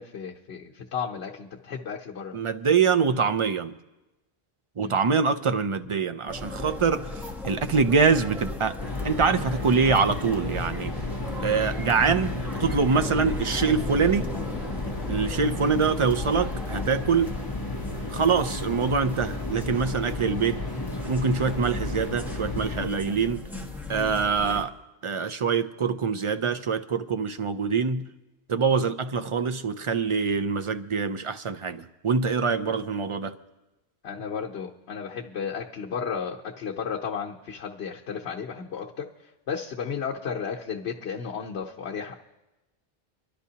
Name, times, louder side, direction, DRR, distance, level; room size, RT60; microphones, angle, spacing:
voice 1, 0.0-2.4 4.8-5.0 34.0-42.1, left 6 dB, 85° left, -1 dB, 1.0 m, -34 dB
voice 2, 2.3-3.8 4.8-8.8 9.0-11.0 11.4-14.3 15.1-17.3 18.1-20.6 21.1-23.4 23.9-24.7 25.0-28.1 28.5-33.4, right 5 dB, 45° right, 10 dB, 0.4 m, -24 dB
sound 1, 6.3-24.6, left 2 dB, ahead, 1.0 m, -37 dB
sound 2, 8.8-22.9, left 2 dB, 25° left, 0.8 m, -33 dB
25.5 x 12.0 x 2.8 m, 1.0 s
omnidirectional pair, 1.1 m